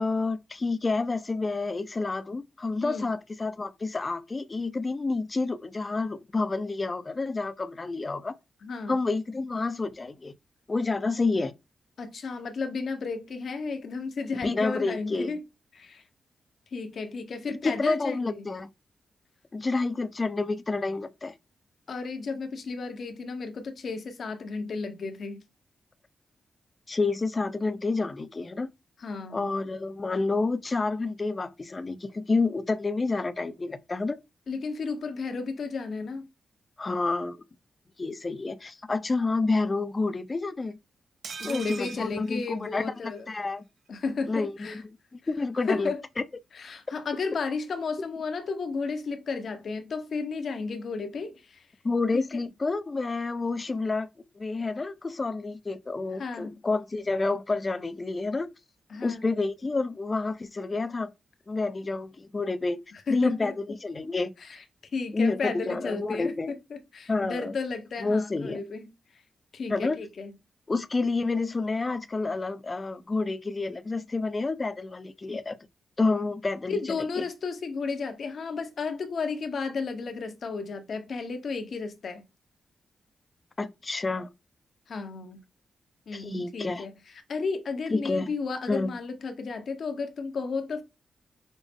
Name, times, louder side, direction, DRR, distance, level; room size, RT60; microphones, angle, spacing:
voice 1, 0.0-8.3 8.9-10.3 10.7-11.5 14.4-15.3 17.5-18.7 19.5-21.3 26.9-28.7 29.3-34.2 36.8-37.4 38.0-40.8 41.4-43.6 44.3-44.8 45.3-45.9 46.2-46.3 51.8-54.1 54.4-58.5 59.0-61.1 61.5-62.8 63.1-64.3 65.1-66.5 67.1-67.5 68.0-68.6 69.7-70.0 70.7-75.6 76.0-76.8 77.2-77.3 83.6-84.3 86.1-86.9 87.9-88.3 88.7-88.9, left 3 dB, 35° left, 0.5 m, -29 dB
voice 2, 8.6-9.0 12.0-15.4 15.8-16.0 16.7-18.5 21.9-25.4 29.0-29.5 34.5-36.2 41.4-43.3 43.9-44.8 45.7-46.0 46.5-51.7 52.1-52.3 56.2-56.6 58.9-59.3 62.9-63.5 64.4-64.6 64.9-68.9 69.5-70.3 76.7-82.2 84.9-85.4 86.1-86.9 87.3-90.8, left 4 dB, 65° left, 0.8 m, -33 dB
sound 1, 41.2-43.2 43.5-43.6 43.9-44.0, right 5 dB, 70° right, 0.7 m, -41 dB
5.3 x 2.0 x 3.5 m
cardioid pair, 80°, 0 cm